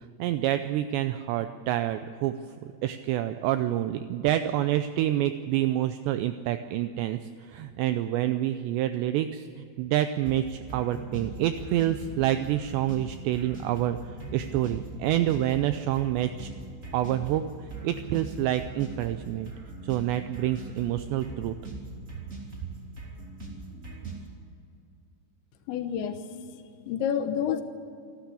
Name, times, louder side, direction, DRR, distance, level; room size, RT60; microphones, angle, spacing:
voice 1, 0.2-2.3 2.6-7.2 7.5-9.5 9.8-16.5 16.9-17.4 17.8-19.5 19.8-21.6, right 12 dB, 85° right, 9 dB, 2.5 m, -27 dB
sound 1, 10.3-24.3, right 2 dB, 20° right, 2.3 m, -41 dB
voice 2, 25.7-26.2 26.9-27.6, left 8 dB, 75° left, 8 dB, 3.2 m, -28 dB
26.5 x 12.0 x 8.4 m, 2.5 s
omnidirectional pair, 5.6 m